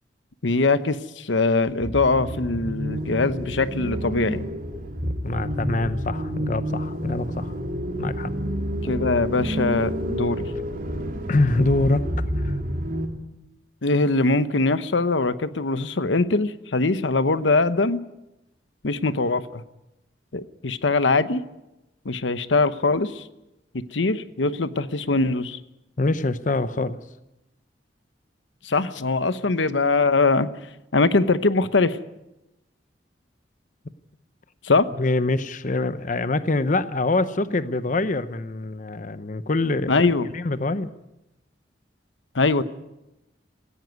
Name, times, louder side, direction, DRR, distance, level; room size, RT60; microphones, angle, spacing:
voice 1, 0.4-4.4 8.8-10.5 13.8-18.0 18.8-19.6 20.3-21.4 22.0-23.2 23.9-25.6 28.6-30.5 30.9-32.0 34.6-34.9 39.9-40.3 42.3-42.6, left 3 dB, 85° left, 13 dB, 1.0 m, -22 dB
sound 1, 1.8-13.1, equal, 50° right, 2.7 m, -29 dB
voice 2, 5.0-7.6 8.0-8.3 11.3-12.1 12.4-12.6 26.0-27.0 35.0-40.9, left 2 dB, 45° left, 13 dB, 0.8 m, -25 dB
17.5 x 16.0 x 9.5 m, 0.92 s
head